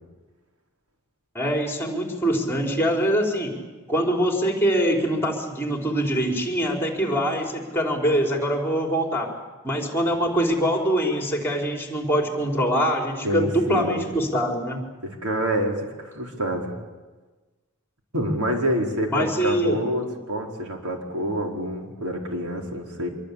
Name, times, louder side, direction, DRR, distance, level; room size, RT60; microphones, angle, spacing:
voice 1, 1.3-3.5 3.9-9.3 9.6-14.8 19.1-19.8, equal, 10° left, 1 dB, 4.5 m, -23 dB
voice 2, 13.2-14.1 15.0-16.7 18.1-23.1, right 1 dB, 90° right, 1 dB, 4.7 m, -27 dB
26.0 x 23.0 x 8.5 m, 1.3 s
head